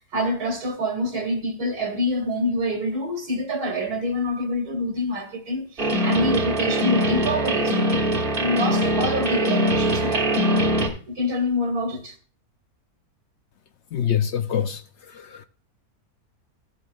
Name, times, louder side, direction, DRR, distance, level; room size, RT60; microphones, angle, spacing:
voice 1, 0.1-8.1 8.4-10.3 11.1-12.1, left 1 dB, 80° right, 2.0 m, -26 dB
sound 1, 5.8-10.9, equal, 35° right, 1.5 m, -22 dB
voice 2, 13.9-14.8 15.1-15.5, left 9 dB, 65° left, 0.7 m, -25 dB
14.0 x 7.8 x 2.3 m
omnidirectional pair, 1.6 m